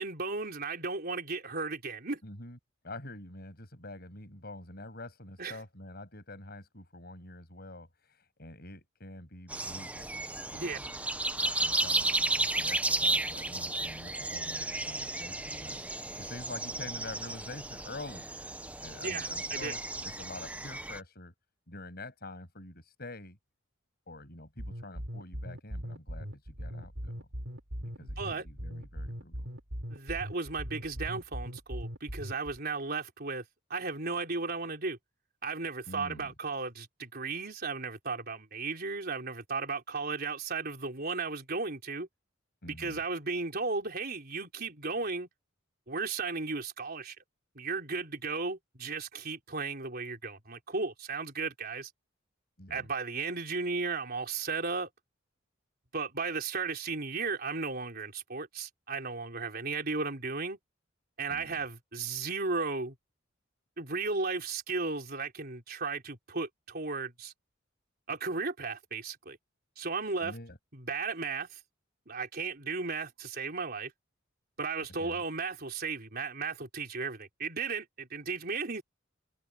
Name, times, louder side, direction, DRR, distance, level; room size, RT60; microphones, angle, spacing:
voice 1, 0.0-2.2 5.4-5.6 10.5-10.8 19.0-19.7 28.0-28.5 29.9-33.4 33.7-35.0 35.4-42.1 42.6-45.3 45.9-47.2 47.6-51.9 52.7-54.9 55.9-60.6 61.2-63.0 63.8-67.3 68.1-69.4 69.8-70.3 70.7-71.6 72.1-73.9 74.6-78.8, right 4 dB, 50° right, 4.1 m, -35 dB
voice 2, 2.2-2.6 2.8-10.2 10.5-18.3 18.8-21.3 21.7-23.4 24.1-27.3 27.8-29.5 35.9-36.3 42.6-43.0 52.6-52.9 61.3-61.6 70.2-70.6 75.0-75.2, left 2 dB, 50° left, 7.5 m, -46 dB
sound 1, 9.5-21.0, right 2 dB, 5° right, 0.8 m, -33 dB
sound 2, 24.6-32.6, equal, 70° right, 6.8 m, -39 dB
head